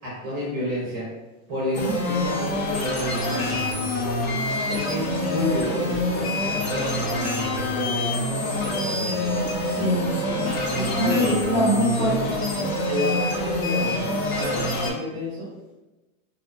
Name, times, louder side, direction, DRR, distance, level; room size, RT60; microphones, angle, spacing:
voice 1, 0.0-1.0 1.5-3.6 4.7-9.7 11.0-11.3 12.9-15.5, left 1 dB, 25° right, -7 dB, 0.4 m, -30 dB
sound 1, 1.7-14.9, left 1 dB, 70° left, 0.7 m, -26 dB
voice 2, 9.7-12.4, equal, 35° left, -5 dB, 0.8 m, -25 dB
2.7 x 2.1 x 2.4 m, 1.1 s
supercardioid pair, 170°, 42 cm